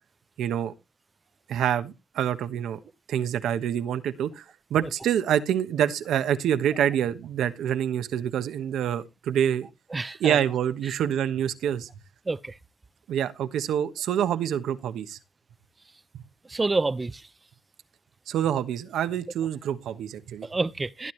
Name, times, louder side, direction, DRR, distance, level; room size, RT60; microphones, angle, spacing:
voice 1, 0.4-0.7 1.5-2.8 3.1-4.4 4.7-9.7 10.2-11.9 13.1-15.2 18.3-20.5, right 9 dB, 85° right, 1.1 m, -26 dB
voice 2, 9.9-10.4 12.3-12.5 16.5-17.2 20.5-21.1, right 3 dB, 30° right, 0.6 m, -27 dB
16.5 x 9.8 x 3.2 m
cardioid pair, 60°, 0 cm